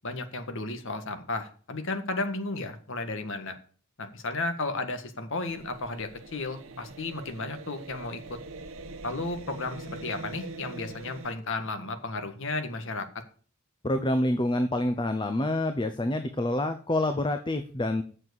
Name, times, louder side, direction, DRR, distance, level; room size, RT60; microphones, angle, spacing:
voice 1, 0.0-3.5 4.0-8.2 9.0-13.1, left 2 dB, 60° left, 7 dB, 1.6 m, -33 dB
sound 1, 5.5-11.3, right 2 dB, 65° right, 1.1 m, -43 dB
voice 2, 13.8-18.0, left 1 dB, 20° left, 8 dB, 0.7 m, -27 dB
7.6 x 7.2 x 8.1 m, 0.43 s
head